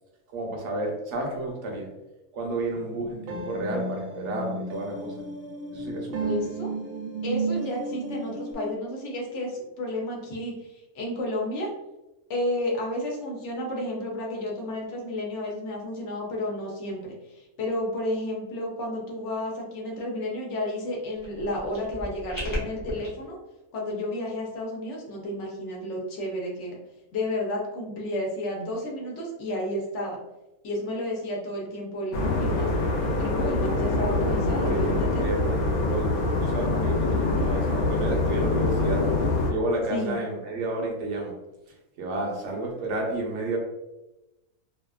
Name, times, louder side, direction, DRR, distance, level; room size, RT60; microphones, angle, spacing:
voice 1, 0.3-1.9 2.3-5.1 5.7-6.4 34.0-34.1 34.6-39.1 39.5-41.4 42.0-43.6, right 2 dB, 60° right, 0 dB, 0.9 m, -31 dB
sound 1, 2.7-8.5, right 3 dB, 90° right, 1.1 m, -33 dB
voice 2, 6.2-6.7 7.2-11.7 12.3-23.4 23.7-26.8 27.1-30.2 30.6-32.7 33.2-35.2 39.9-40.2, left 1 dB, 60° left, -1 dB, 0.9 m, -31 dB
sound 2, 21.1-23.1, equal, 20° left, 0.6 m, -36 dB
sound 3, 32.1-39.5, left 2 dB, 85° left, 1.1 m, -25 dB
2.7 x 2.3 x 2.3 m, 0.99 s
omnidirectional pair, 1.5 m